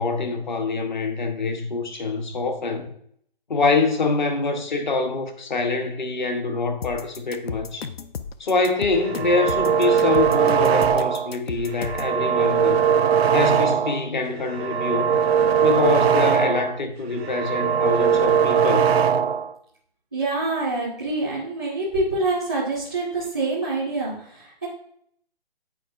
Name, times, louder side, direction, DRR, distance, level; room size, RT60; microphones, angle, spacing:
voice 1, 0.0-2.9 3.5-7.9 8.4-12.9 13.3-15.1 15.6-18.9, left 3 dB, 50° left, 0.9 m, -25 dB
sound 1, 6.8-12.1, left 6 dB, 85° left, 0.6 m, -34 dB
sound 2, 9.0-11.3 11.7-14.1 14.4-16.8 17.1-19.5, right 7 dB, 85° right, 0.5 m, -20 dB
voice 2, 20.1-24.7, right 2 dB, 5° left, 0.5 m, -26 dB
8.4 x 4.7 x 2.4 m
hypercardioid pair, 170°, 30 cm